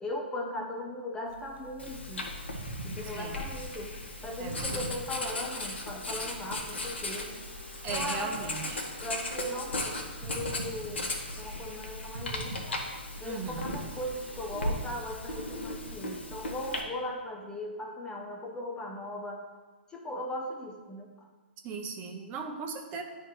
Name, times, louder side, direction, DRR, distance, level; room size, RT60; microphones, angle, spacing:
voice 1, 0.0-2.2 2.8-3.9 4.2-7.4 7.9-8.7 9.0-12.8 13.2-19.4 19.9-21.1, left 1 dB, 10° left, 2 dB, 0.6 m, -38 dB
sound 1, 1.3-15.0, equal, 85° right, 0.9 m, -45 dB
Writing, 1.8-16.8, left 2 dB, 90° left, 1.2 m, -37 dB
voice 2, 3.1-3.4 4.4-4.9 7.8-8.9 13.2-13.8 21.6-23.0, right 5 dB, 30° right, 3 dB, 0.8 m, -38 dB
9.9 x 3.3 x 4.7 m, 1.3 s
hypercardioid pair, 130°, 6 cm